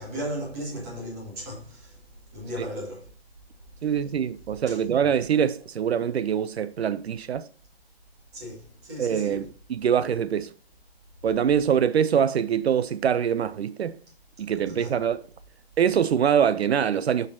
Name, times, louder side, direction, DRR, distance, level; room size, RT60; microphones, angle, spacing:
voice 1, 0.0-2.0 2.3-3.1 4.7-4.8 8.3-9.4 14.7-15.0, equal, 15° right, 1.5 m, -36 dB
voice 2, 3.8-7.5 9.0-10.5 11.2-14.0 14.4-15.2 15.8-17.3, right 8 dB, 75° right, 0.5 m, -24 dB
7.2 x 6.6 x 2.5 m
hypercardioid pair, 175°, 32 cm